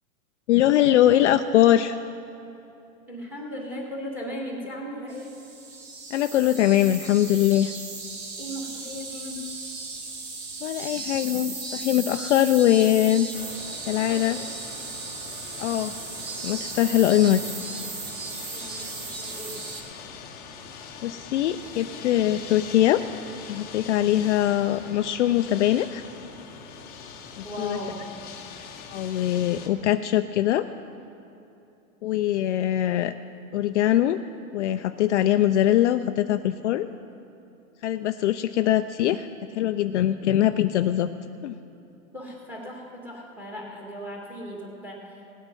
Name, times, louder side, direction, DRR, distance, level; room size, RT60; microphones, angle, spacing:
voice 1, 0.5-2.0 6.1-7.7 10.6-13.3 13.9-14.4 15.6-15.9 16.4-17.4 21.0-23.0 23.5-26.0 27.4-27.8 28.9-30.7 32.0-33.1 33.5-34.2 34.5-36.9 37.8-39.3 39.5-41.1 41.4-41.6, left 12 dB, 55° left, 9 dB, 0.5 m, -22 dB
voice 2, 3.1-5.3 8.4-9.4 14.1-14.4 18.5-19.7 27.4-28.0 42.1-45.2, equal, 5° right, -2 dB, 2.1 m, -37 dB
sound 1, 5.1-19.8, right 3 dB, 30° right, 1.7 m, -36 dB
sound 2, 13.3-29.7, left 6 dB, 20° left, 1.0 m, -43 dB
18.5 x 8.1 x 5.4 m, 2.7 s
hypercardioid pair, 145°, 42 cm